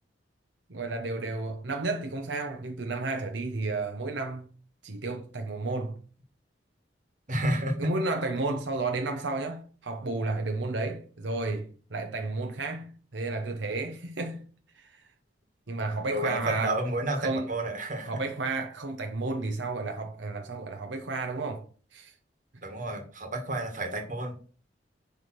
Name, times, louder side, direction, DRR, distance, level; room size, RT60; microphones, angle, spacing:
voice 1, 0.7-4.5 4.8-6.0 7.8-14.5 14.8-15.0 15.7-16.8 17.2-17.5 18.1-21.6 21.9-22.1, right 3 dB, 80° right, 1.0 m, -32 dB
voice 2, 7.3-8.0 16.1-18.2 22.6-24.4, right 1 dB, 45° right, 1.8 m, -30 dB
10.0 x 3.6 x 6.2 m
head